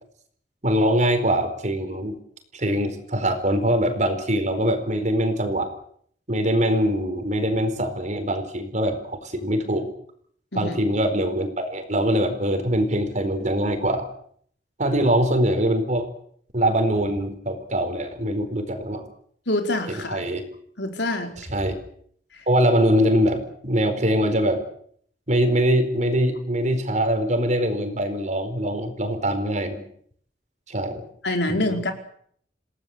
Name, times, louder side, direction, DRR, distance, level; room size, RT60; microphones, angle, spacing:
voice 1, 0.6-2.2 2.5-5.7 6.3-9.9 10.5-14.1 14.8-16.1 16.5-19.1 19.9-20.4 21.4-21.8 22.5-24.6 25.3-29.8 30.7-31.0 31.5-31.6, equal, 45° right, 8 dB, 4.6 m, -23 dB
voice 2, 19.5-20.2 20.8-21.3 31.2-31.9, left 1 dB, 80° left, 4 dB, 4.6 m, -25 dB
28.5 x 18.5 x 8.1 m, 0.64 s
head